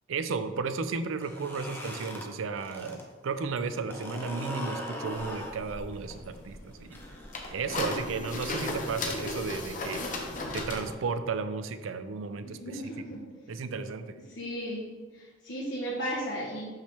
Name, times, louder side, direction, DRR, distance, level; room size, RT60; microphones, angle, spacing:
voice 1, 0.1-7.0 7.5-10.2 10.5-13.1 13.5-14.2, right 4 dB, 80° right, 10 dB, 0.4 m, -34 dB
sound 1, 1.1-3.0 3.3-8.1, left 1 dB, 10° left, 0.7 m, -41 dB
sound 2, 5.1-10.9, left 2 dB, 40° left, 0.8 m, -36 dB
voice 2, 12.4-13.5 14.3-14.9 15.1-16.6, equal, 65° left, -7 dB, 1.3 m, -35 dB
5.7 x 5.6 x 3.4 m, 1.4 s
head